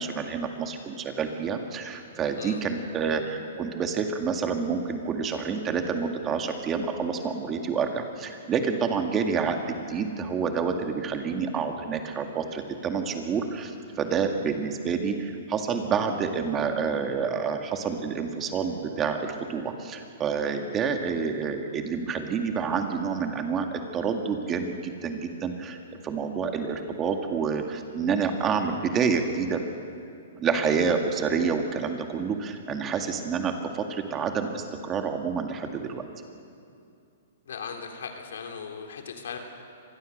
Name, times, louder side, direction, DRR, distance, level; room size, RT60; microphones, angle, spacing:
voice 1, 0.0-29.6 30.4-36.0, right 5 dB, 25° right, 5 dB, 2.1 m, -28 dB
voice 2, 2.3-2.7 37.4-39.4, left 6 dB, 75° left, 3 dB, 3.3 m, -38 dB
25.5 x 19.5 x 6.7 m, 2.4 s
hypercardioid pair, 140°, 0 cm